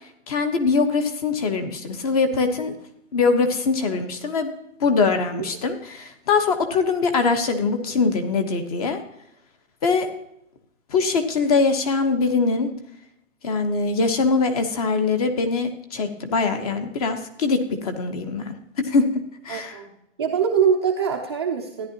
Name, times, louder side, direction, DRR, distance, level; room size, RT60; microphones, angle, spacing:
voice 1, 0.3-2.7 3.1-4.5 4.8-9.0 9.8-10.1 10.9-12.7 13.4-19.1 19.4-19.8, left 4 dB, 30° left, 8 dB, 1.0 m, -22 dB
voice 2, 19.5-19.9 20.2-21.9, right 7 dB, 20° right, 0 dB, 0.5 m, -23 dB
14.0 x 10.0 x 2.8 m, 0.80 s
hypercardioid pair, 155°, 40 cm